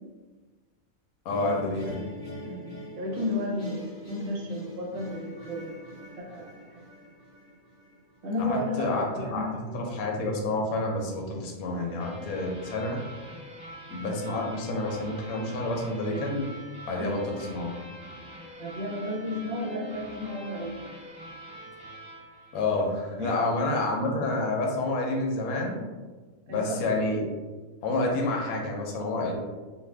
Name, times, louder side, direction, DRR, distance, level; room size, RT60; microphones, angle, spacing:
voice 1, 1.2-2.0 8.4-9.4 9.7-13.0 13.9-16.4 16.9-17.7 22.5-25.8 26.5-27.2 27.8-29.4, left 2 dB, 80° left, 1 dB, 1.0 m, -29 dB
sound 1, 1.3-8.4, equal, 45° left, 1.0 m, -43 dB
voice 2, 3.0-5.9 6.2-6.8 8.2-10.0 17.0-17.2 18.6-21.0 23.2-23.3 26.5-26.8, left 1 dB, 50° right, -3 dB, 0.8 m, -33 dB
sound 2, 12.0-23.3, equal, 5° right, 0.7 m, -45 dB
2.5 x 2.4 x 3.3 m, 1.3 s
omnidirectional pair, 1.5 m